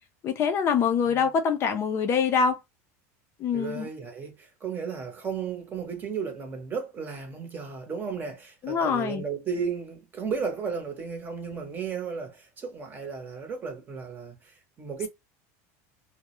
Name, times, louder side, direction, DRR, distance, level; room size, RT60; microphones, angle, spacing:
voice 1, 0.2-2.6 3.4-3.9 8.6-9.2, left 6 dB, 35° left, 0.4 m, -24 dB
voice 2, 3.5-15.1, right 6 dB, 25° right, 0.7 m, -34 dB
2.2 x 2.0 x 2.8 m
supercardioid pair, 140°, 8 cm